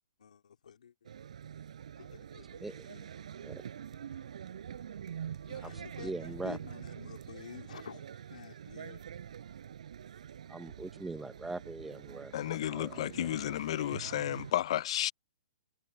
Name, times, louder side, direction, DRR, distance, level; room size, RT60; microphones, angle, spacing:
voice 1, 0.2-1.1 2.0-3.1 5.3-9.1, left 7 dB, 85° left, 2.9 m, -50 dB
sound 1, 1.0-14.5, right 8 dB, 70° right, 4.3 m, -45 dB
voice 2, 5.6-6.6 10.5-12.3 12.7-13.1, right 2 dB, 5° right, 0.5 m, -41 dB
voice 3, 12.3-15.1, left 12 dB, 50° left, 0.4 m, -32 dB
hypercardioid pair, 160°, 4 cm